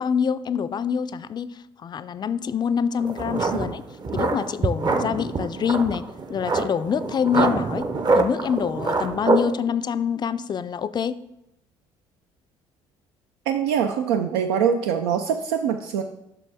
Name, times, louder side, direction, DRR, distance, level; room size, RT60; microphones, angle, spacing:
voice 1, 0.0-3.8 4.1-6.0 6.3-7.9 8.1-11.2, left 7 dB, 35° left, 13 dB, 0.3 m, -25 dB
sound 1, 3.0-9.5, right 3 dB, 35° right, 0.7 m, -25 dB
voice 2, 13.5-16.0, right 8 dB, 90° right, 6 dB, 0.4 m, -23 dB
6.7 x 5.7 x 3.4 m, 0.85 s
supercardioid pair, 70°, 13 cm